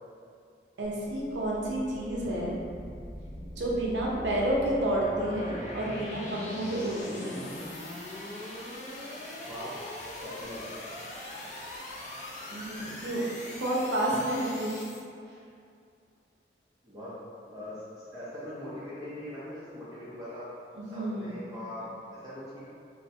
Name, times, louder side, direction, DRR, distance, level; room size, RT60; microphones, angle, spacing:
voice 1, 0.8-2.6 3.6-7.3 12.5-13.2 13.6-14.8 20.8-21.3, right 1 dB, 90° right, -4 dB, 0.6 m, -30 dB
sound 1, 0.9-15.0, left 1 dB, 40° left, 0.4 m, -42 dB
voice 2, 9.5-9.8 10.2-10.7 16.8-17.1 17.5-20.4 20.9-21.9 22.2-22.6, left 1 dB, 20° right, -12 dB, 0.5 m, -41 dB
3.1 x 2.0 x 2.6 m, 2.4 s
head